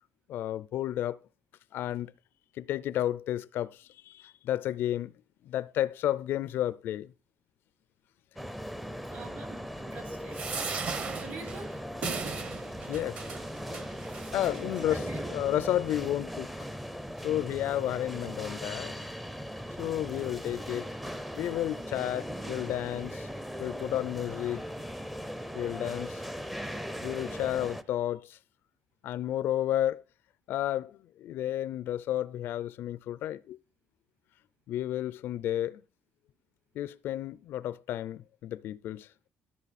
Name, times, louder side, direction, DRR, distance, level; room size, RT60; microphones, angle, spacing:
voice 1, 0.3-1.2 1.7-2.1 2.6-5.1 5.4-7.1 12.9-13.2 14.3-16.5 17.2-19.1 19.8-20.9 21.3-23.3 23.6-24.6 25.5-26.2 27.0-28.4 29.0-30.0 30.5-33.6 34.7-35.8 36.8-39.1, left 12 dB, 65° left, 0.4 m, -32 dB
sound 1, 8.4-27.8, equal, 5° right, 0.5 m, -39 dB
voice 2, 8.8-10.4 11.0-11.8 14.9-15.2, right 4 dB, 60° right, 3.6 m, -46 dB
sound 2, 10.3-14.9 15.5-15.6 15.9-16.0, right 4 dB, 40° right, 1.0 m, -37 dB
13.0 x 7.4 x 4.1 m
cardioid pair, 155°, 4 cm